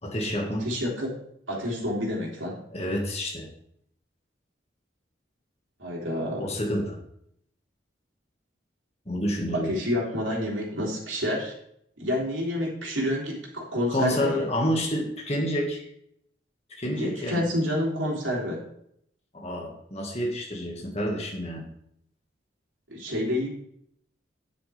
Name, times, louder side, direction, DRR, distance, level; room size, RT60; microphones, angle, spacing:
voice 1, 0.0-0.7 2.7-3.5 6.4-7.0 9.1-9.8 13.9-15.9 16.7-17.4 19.3-21.7, equal, 35° left, -1 dB, 1.9 m, -29 dB
voice 2, 0.6-1.1 1.5-2.6 5.8-6.5 9.5-11.5 12.0-14.5 16.9-18.6 22.9-23.5, left 1 dB, 90° right, -3 dB, 3.5 m, -28 dB
10.0 x 8.1 x 3.5 m, 0.70 s
head